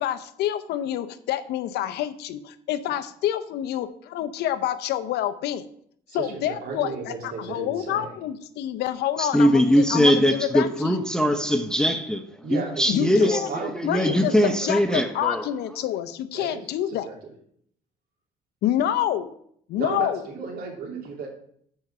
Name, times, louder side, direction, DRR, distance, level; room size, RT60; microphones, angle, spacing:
voice 1, 0.0-5.7 6.1-11.0 12.9-13.5 13.8-14.3 14.6-17.1 18.6-19.4 19.7-20.3, left 11 dB, 80° left, 11 dB, 0.7 m, -27 dB
voice 2, 6.1-8.1 12.4-14.5 14.9-15.0 16.3-16.6 16.9-17.1 19.8-21.3, right 4 dB, 65° right, 0 dB, 2.8 m, -34 dB
voice 3, 9.2-15.5, equal, 5° left, 6 dB, 0.6 m, -21 dB
8.9 x 4.8 x 5.6 m, 0.66 s
cardioid pair, 110°, 17 cm